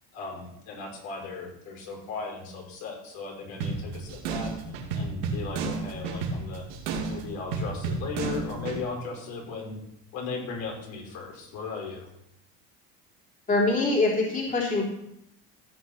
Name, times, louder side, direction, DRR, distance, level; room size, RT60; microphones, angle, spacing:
voice 1, 0.1-4.5 4.9-6.6 7.1-9.8 10.1-12.1, left 4 dB, 65° left, 0 dB, 4.8 m, -37 dB
sound 1, 3.6-8.8, right 4 dB, 85° right, 2.5 m, -32 dB
voice 2, 13.5-14.8, left 2 dB, 25° left, -2 dB, 3.5 m, -24 dB
15.5 x 6.5 x 5.9 m, 0.79 s
supercardioid pair, 110°, 30 cm